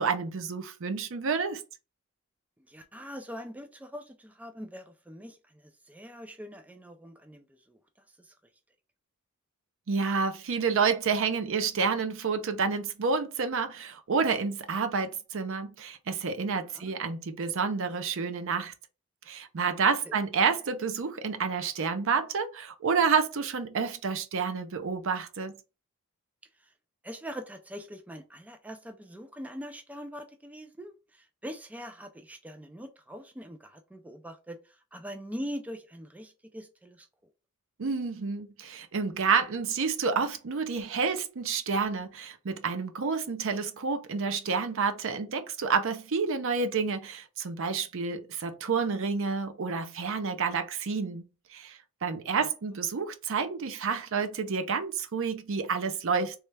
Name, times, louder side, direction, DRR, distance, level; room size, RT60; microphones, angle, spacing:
voice 1, 0.0-1.6 9.9-18.7 19.3-25.5 37.8-51.2 51.5-56.3, right 5 dB, 65° right, 0.6 m, -29 dB
voice 2, 2.7-7.8 8.2-8.3 16.7-16.9 20.1-20.2 26.6-26.7 27.0-37.1 52.4-52.5, equal, 5° right, 0.3 m, -43 dB
3.3 x 3.1 x 3.3 m
head